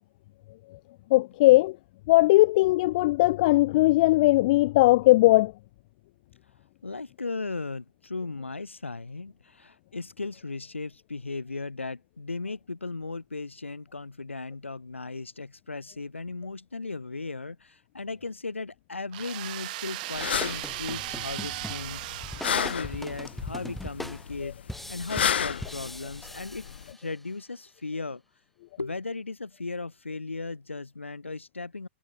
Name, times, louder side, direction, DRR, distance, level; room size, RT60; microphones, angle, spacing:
voice 1, 1.1-1.8 2.1-5.5, left 19 dB, 40° left, 0.5 m, -19 dB
voice 2, 6.8-22.1 22.4-24.6 24.9-26.6 26.9-28.2 28.8-31.9, left 3 dB, 75° left, 7.7 m, -36 dB
sound 1, 19.1-23.2, right 18 dB, 40° right, 5.0 m, -37 dB
sound 2, 19.9-27.3, left 1 dB, ahead, 2.5 m, -41 dB
sound 3, 20.2-26.9, left 8 dB, 60° left, 1.3 m, -33 dB
figure-of-eight pair, 110°, 7 cm